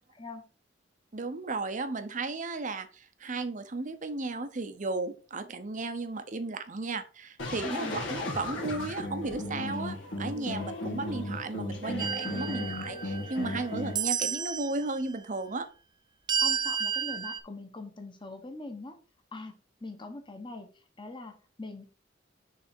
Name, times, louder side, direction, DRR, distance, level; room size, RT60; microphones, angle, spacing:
voice 1, 1.1-15.7, right 3 dB, 40° right, 0.8 m, -35 dB
sound 1, 7.4-13.9, left 2 dB, 80° left, 2.1 m, -35 dB
voice 2, 7.6-8.0 10.3-10.6 13.8-14.1 16.4-19.0 19.3-19.5 19.8-21.9, left 2 dB, 25° left, 1.1 m, -42 dB
sound 2, 12.0-13.5 13.9-14.8 16.3-17.4, right 7 dB, 25° right, 0.3 m, -31 dB
6.5 x 3.5 x 4.3 m
head